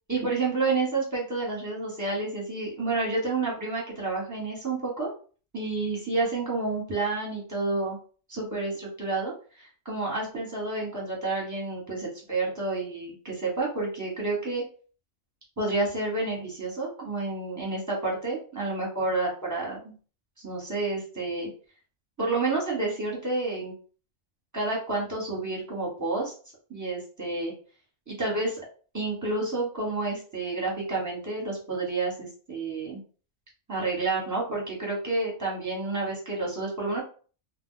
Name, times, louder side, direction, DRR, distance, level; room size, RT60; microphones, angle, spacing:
voice 1, 0.1-5.1 5.5-8.0 8.3-14.6 15.6-19.9 20.4-21.5 22.2-23.7 24.5-26.3 26.7-27.5 28.1-28.6 28.9-33.0 33.7-37.0, right 3 dB, 15° right, -3 dB, 1.0 m, -29 dB
2.3 x 2.2 x 3.7 m, 0.40 s
omnidirectional pair, 1.2 m